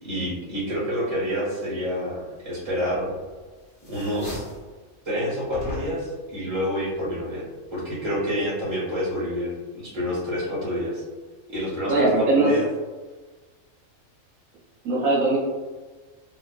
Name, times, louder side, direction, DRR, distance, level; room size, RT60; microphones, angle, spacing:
voice 1, 0.0-3.1 3.8-4.4 5.0-7.4 7.7-11.0 11.5-12.7, equal, 20° right, -8 dB, 1.2 m, -28 dB
sound 1, 3.1-3.4 3.7-4.7 5.5-6.2, left 1 dB, 35° left, 0.7 m, -37 dB
voice 2, 11.9-12.5 14.8-15.4, right 2 dB, 85° right, -6 dB, 1.3 m, -20 dB
2.9 x 2.4 x 2.4 m, 1.3 s
omnidirectional pair, 1.4 m